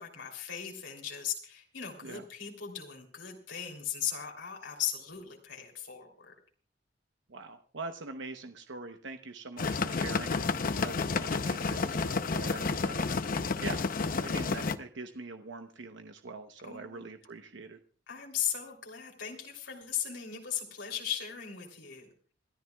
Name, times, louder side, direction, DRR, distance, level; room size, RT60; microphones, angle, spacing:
voice 1, 0.0-6.3 16.6-17.1 18.1-22.1, left 9 dB, 80° left, 2 dB, 3.1 m, -37 dB
voice 2, 7.3-13.1 13.6-17.8, right 3 dB, 85° right, 6 dB, 0.9 m, -43 dB
sound 1, 9.6-14.8, left 4 dB, 50° left, 0.7 m, -31 dB
27.5 x 12.5 x 2.3 m, 0.40 s
head